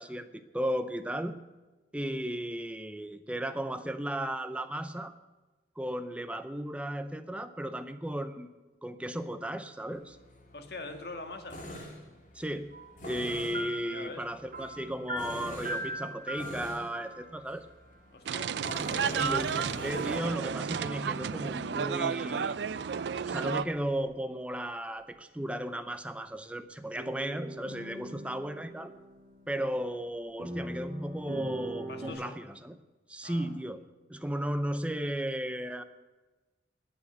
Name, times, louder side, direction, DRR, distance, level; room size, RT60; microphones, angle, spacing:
voice 1, 0.0-1.4 1.9-5.1 5.8-8.5 8.8-10.2 12.3-12.8 13.0-17.7 19.2-22.6 23.3-28.9 29.5-32.8 33.1-33.8 34.1-35.8, right 1 dB, 5° right, 9 dB, 0.6 m, -35 dB
Tools, 9.9-24.0, equal, 45° left, 2.9 m, -45 dB
voice 2, 10.5-11.6 13.9-14.2 18.1-18.5 18.9-19.3 31.9-32.4 33.2-33.5, left 2 dB, 65° left, 5 dB, 1.7 m, -43 dB
sound 1, 12.7-17.4 18.6-20.3 20.7-21.3 21.7-22.0 22.7-23.2 27.0-30.1 30.4-32.1, right 1 dB, 50° right, 3.5 m, -41 dB
sound 2, 18.3-23.7, right 7 dB, 80° right, 0.4 m, -32 dB
19.5 x 7.2 x 6.9 m, 1.2 s
head